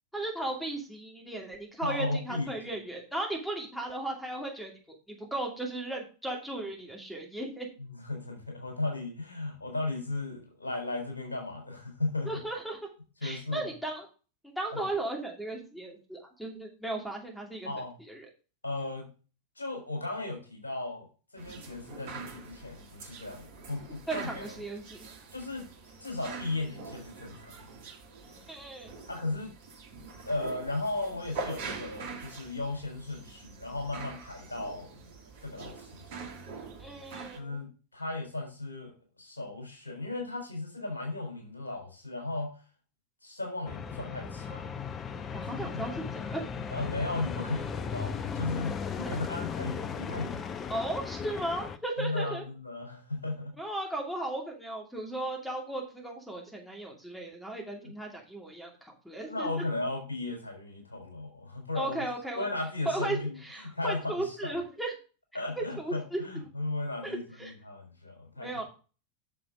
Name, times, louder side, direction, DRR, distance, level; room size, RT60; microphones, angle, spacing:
voice 1, 0.1-7.7 12.2-12.8 13.2-14.1 14.6-17.7 18.1-18.3 24.1-25.1 28.5-28.9 36.8-37.6 45.3-46.5 50.7-52.4 53.6-59.5 61.8-62.5 62.8-64.9 65.6-66.3 67.0-67.5 68.4-68.6, right 2 dB, ahead, 1 dB, 2.6 m, -36 dB
voice 2, 1.8-2.5 7.8-12.3 13.2-13.6 14.7-14.8 17.6-17.9 18.6-19.1 19.6-21.1 21.3-24.6 25.3-25.7 26.0-27.5 29.1-29.5 30.2-34.9 35.4-36.2 37.4-42.5 43.2-44.7 45.7-45.8 46.7-50.6 52.0-53.5 59.3-62.0 62.4-63.4 63.6-64.5 65.3-68.5, left 2 dB, 75° left, 2 dB, 4.1 m, -35 dB
sound 1, 21.4-37.4, right 4 dB, 50° right, 2.5 m, -44 dB
sound 2, 43.7-51.8, left 6 dB, 25° left, 0.8 m, -36 dB
9.2 x 6.9 x 3.7 m, 0.35 s
figure-of-eight pair, 90°, 0 cm